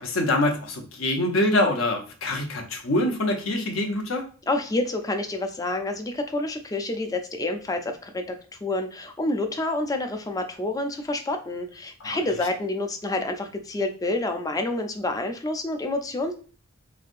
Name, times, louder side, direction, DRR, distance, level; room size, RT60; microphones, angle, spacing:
voice 1, 0.0-4.2 12.0-12.2, left 1 dB, 80° left, 3 dB, 0.7 m, -25 dB
voice 2, 4.5-16.3, left 2 dB, 20° left, 6 dB, 0.4 m, -28 dB
3.2 x 2.6 x 2.4 m, 0.40 s
head